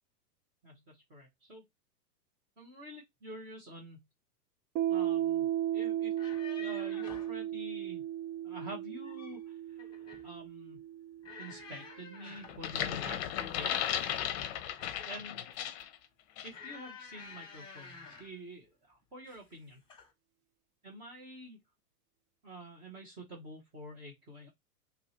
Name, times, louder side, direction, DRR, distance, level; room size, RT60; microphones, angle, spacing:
voice 1, 0.6-1.6 2.6-4.0 4.9-5.5 5.7-6.1 6.6-8.0 8.4-10.8 11.4-13.9 15.0-15.4 16.4-19.8 20.8-21.6 22.4-24.5, right 1 dB, 10° right, 0.3 m, -48 dB
Piano, 4.8-12.0, right 12 dB, 55° right, 0.6 m, -35 dB
sound 1, 6.0-7.4 8.8-9.4 9.8-10.3 11.2-12.6 13.6-15.3 16.5-18.4 19.2-19.5 19.9-20.1, left 5 dB, 10° left, 0.9 m, -51 dB
sound 2, 12.5-15.9 16.4-16.6, left 10 dB, 40° left, 0.6 m, -35 dB
2.9 x 2.7 x 2.7 m
hypercardioid pair, 125°, 48 cm